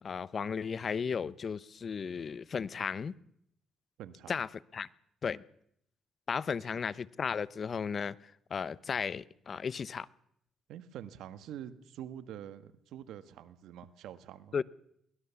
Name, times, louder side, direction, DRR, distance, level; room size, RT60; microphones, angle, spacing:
voice 1, 0.0-3.1 4.3-4.5 4.7-4.9 5.2-5.4 6.3-8.2 8.5-10.1 14.5-14.6, left 6 dB, 45° left, 0.8 m, -35 dB
voice 2, 4.0-4.4 10.7-14.6, right 10 dB, 85° right, 1.5 m, -46 dB
22.5 x 19.0 x 7.1 m
cardioid pair, 90°, 0 cm